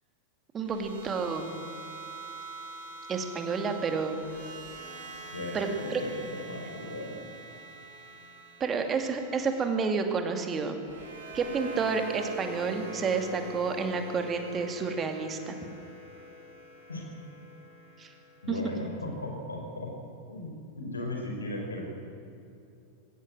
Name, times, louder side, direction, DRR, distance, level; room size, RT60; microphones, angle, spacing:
voice 1, 0.5-1.5 3.1-4.2 5.5-6.0 8.6-10.8 11.3-15.5 18.0-18.1 18.5-18.6, right 5 dB, 25° right, 6 dB, 2.4 m, -30 dB
sound 1, 0.6-18.8, right 2 dB, 65° right, 5.6 m, -45 dB
voice 2, 5.3-7.2 16.9-17.0 18.4-19.9 20.3-21.8, left 1 dB, 75° left, 1 dB, 5.0 m, -37 dB
20.5 x 17.0 x 7.7 m, 2.7 s
figure-of-eight pair, 90°, 0 cm